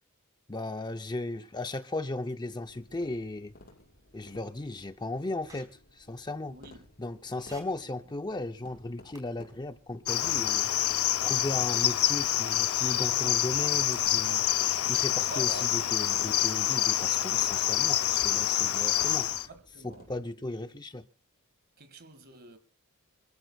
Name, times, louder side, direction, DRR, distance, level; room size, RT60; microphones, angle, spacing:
voice 1, 0.5-3.5 4.1-6.6 7.0-10.7 11.2-14.4 14.9-19.3 19.8-21.1, left 2 dB, 20° left, 0.6 m, -36 dB
sound 1, 2.3-20.2, left 1 dB, 45° left, 6.6 m, -57 dB
sound 2, 5.5-5.6 7.3-7.6 9.1-9.2 11.0-11.2, right 2 dB, 15° right, 4.2 m, -51 dB
voice 2, 6.4-6.9 15.2-15.9 19.3-20.1 21.8-22.6, right 3 dB, 45° right, 2.0 m, -46 dB
Cricket, 10.1-19.5, left 12 dB, 75° left, 0.7 m, -27 dB
26.5 x 14.5 x 2.4 m
head